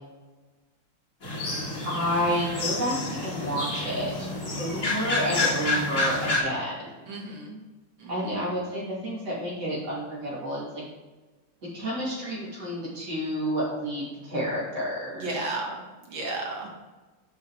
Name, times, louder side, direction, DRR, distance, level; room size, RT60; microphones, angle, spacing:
sound 1, 1.2-6.4, left 2 dB, 45° left, 2.3 m, -29 dB
voice 1, 1.8-2.9 3.2-4.3 4.6-7.1 8.1-10.8 11.7-15.4, equal, 55° right, -6 dB, 3.2 m, -30 dB
voice 2, 5.8-6.3 7.1-7.6 8.0-8.4 15.2-15.8 16.1-16.7, right 2 dB, 75° right, -1 dB, 2.2 m, -34 dB
6.5 x 5.1 x 4.8 m, 1.3 s
omnidirectional pair, 2.1 m